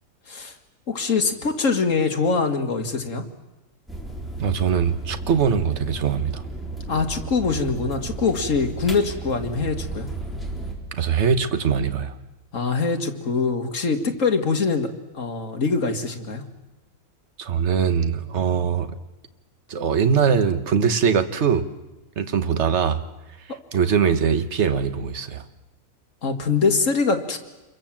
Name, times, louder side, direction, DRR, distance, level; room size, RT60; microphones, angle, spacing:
voice 1, 0.9-3.2 6.9-10.1 12.5-14.9 15.1-16.4 26.2-27.4, left 4 dB, 55° left, 5 dB, 2.2 m, -23 dB
sound 1, 3.9-10.7, right 3 dB, ahead, 4.2 m, -33 dB
voice 2, 4.4-6.4 10.9-12.1 17.4-18.9 19.7-21.7 22.2-23.0 23.7-25.4, right 7 dB, 50° right, 10 dB, 1.4 m, -22 dB
27.0 x 23.0 x 7.5 m, 1.1 s
omnidirectional pair, 1.7 m